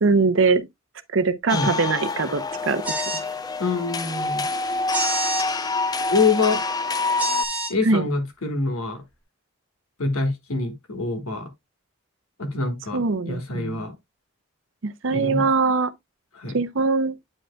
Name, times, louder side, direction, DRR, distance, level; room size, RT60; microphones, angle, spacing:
voice 1, 0.0-0.6 1.1-3.0 7.8-8.1 12.9-13.9 14.8-15.9 16.5-17.1, right 4 dB, 65° right, 0.6 m, -22 dB
sound 1, 1.5-7.5, left 3 dB, 20° left, 0.4 m, -27 dB
sound 2, 2.8-3.3 4.9-5.5 7.2-7.7, right 2 dB, 5° right, 1.1 m, -27 dB
voice 2, 3.6-4.4 6.1-6.6 7.7-9.0 10.0-11.5 12.4-13.9 15.1-15.5 16.3-16.6, left 3 dB, 90° left, 1.6 m, -25 dB
8.6 x 5.2 x 2.2 m
head